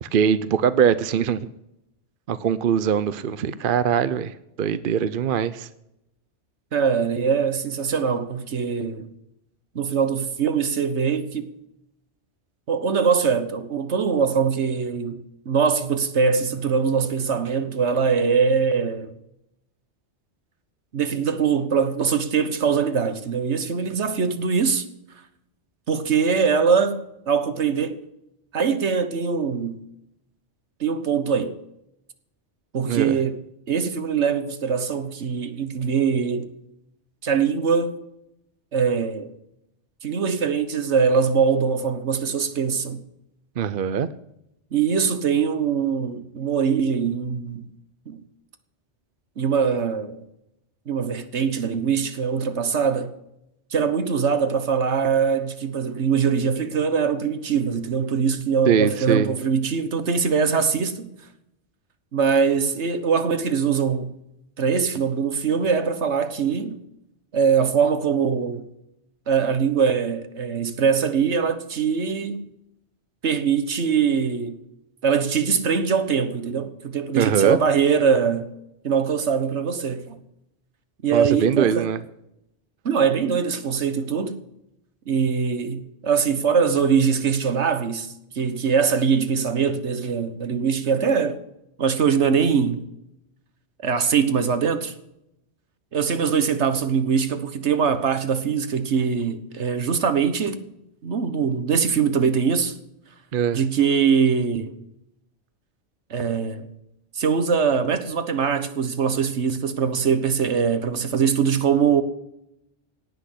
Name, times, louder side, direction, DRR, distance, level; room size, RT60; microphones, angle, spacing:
voice 1, 0.0-1.5 2.3-5.7 32.8-33.2 43.6-44.1 58.7-59.3 77.1-77.6 81.1-82.0 103.3-103.6, right 8 dB, 55° right, 0.8 m, -22 dB
voice 2, 6.7-9.1 9.7-11.5 12.7-15.2 15.4-19.1 20.9-24.8 25.9-28.0 28.5-29.8 30.8-31.6 32.7-33.4 33.7-36.5 37.2-38.0 38.7-39.3 40.0-43.0 44.7-47.7 48.1-48.2 49.4-50.2 50.9-53.1 53.7-61.1 62.1-64.1 64.6-66.8 67.3-68.7 69.3-72.4 73.2-74.6 75.0-78.5 78.8-80.2 81.0-81.9 82.8-84.4 85.1-91.4 91.8-92.8 93.8-94.9 95.9-100.7 101.0-102.7 103.5-104.7 106.1-106.7 107.1-112.0, right 6 dB, 70° right, 1.5 m, -22 dB
18.0 x 6.5 x 9.9 m
omnidirectional pair, 1.2 m